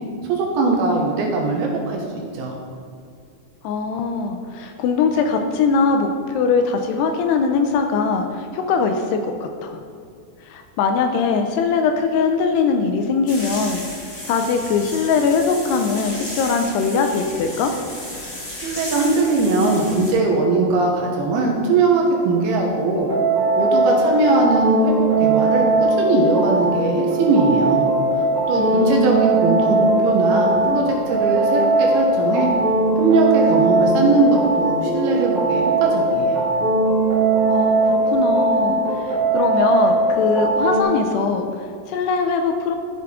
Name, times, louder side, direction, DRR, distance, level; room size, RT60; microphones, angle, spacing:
voice 1, 0.3-2.0 2.3-2.5 18.6-23.1 23.6-27.9 28.2-32.5 33.0-36.5, right 3 dB, 75° right, 0 dB, 2.6 m, -20 dB
voice 2, 3.6-9.8 10.4-13.8 14.3-17.7 28.6-29.2 37.5-42.8, left 5 dB, 80° left, 5 dB, 2.5 m, -21 dB
sound 1, 13.3-20.1, left 1 dB, 55° left, 0.8 m, -34 dB
sound 2, 22.9-40.8, right 2 dB, 40° right, 1.4 m, -19 dB
13.5 x 6.0 x 3.6 m, 2.3 s
omnidirectional pair, 5.0 m